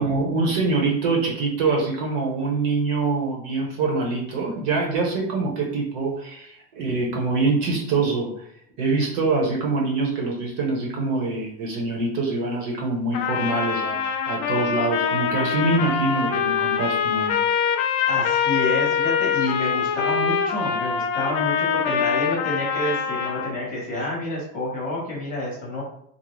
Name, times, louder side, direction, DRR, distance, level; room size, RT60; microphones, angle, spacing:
voice 1, 0.0-8.5 8.8-17.4, right 3 dB, 55° right, 0 dB, 0.8 m, -24 dB
Trumpet, 13.1-23.5, left 7 dB, 70° left, 0.5 m, -24 dB
voice 2, 18.1-25.8, left 1 dB, 20° left, -4 dB, 0.8 m, -29 dB
2.5 x 2.0 x 3.1 m, 0.69 s
cardioid pair, 160°, 42 cm